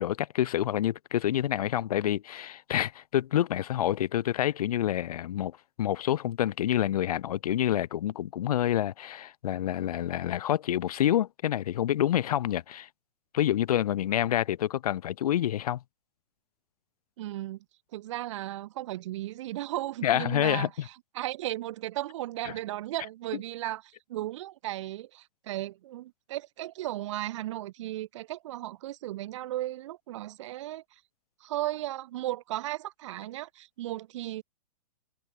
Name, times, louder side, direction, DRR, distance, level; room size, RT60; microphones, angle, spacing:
voice 1, 0.0-12.9 13.3-15.8 20.0-20.7 22.4-22.5, left 11 dB, 70° left, 0.8 m, -27 dB
voice 2, 17.2-17.6 17.9-30.8 31.4-34.4, right 15 dB, 50° right, 0.5 m, -35 dB
hypercardioid pair, 150°, 20 cm